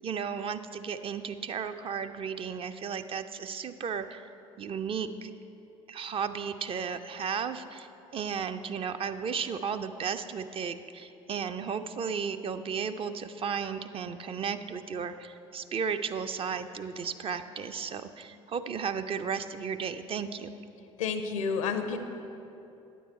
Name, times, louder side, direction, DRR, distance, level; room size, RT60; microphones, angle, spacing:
voice 1, 0.0-4.3 4.6-5.3 5.9-20.5, right 6 dB, 35° right, 9 dB, 0.4 m, -34 dB
voice 2, 21.0-22.0, left 5 dB, 75° left, 8 dB, 0.6 m, -30 dB
9.4 x 7.2 x 4.4 m, 2.8 s
figure-of-eight pair, 55°, 17 cm